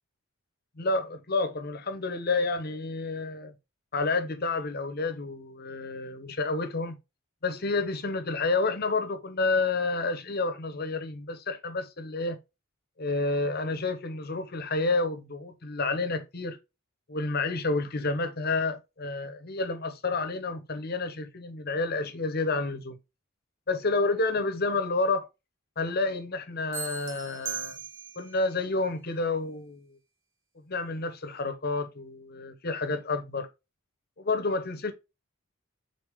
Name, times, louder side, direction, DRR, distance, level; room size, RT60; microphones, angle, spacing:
voice 1, 0.8-3.5 3.9-6.9 7.4-12.4 13.0-16.6 17.1-23.0 23.7-25.3 25.8-27.8 28.2-30.0 30.7-33.5 34.2-34.9, left 3 dB, 45° left, 0.9 m, -29 dB
sound 1, 26.7-28.4, right 8 dB, 65° right, 1.3 m, -38 dB
6.6 x 4.0 x 3.5 m
head